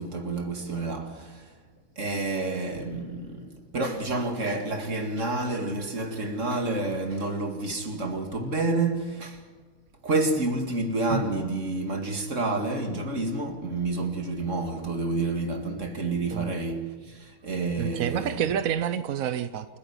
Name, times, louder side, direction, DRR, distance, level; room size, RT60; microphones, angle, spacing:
voice 1, 0.0-1.5 2.0-9.4 10.0-18.4, right 2 dB, 35° right, 2.4 m, -29 dB
voice 2, 17.8-19.7, right 9 dB, 65° right, 0.8 m, -28 dB
28.5 x 10.5 x 9.7 m
omnidirectional pair, 2.3 m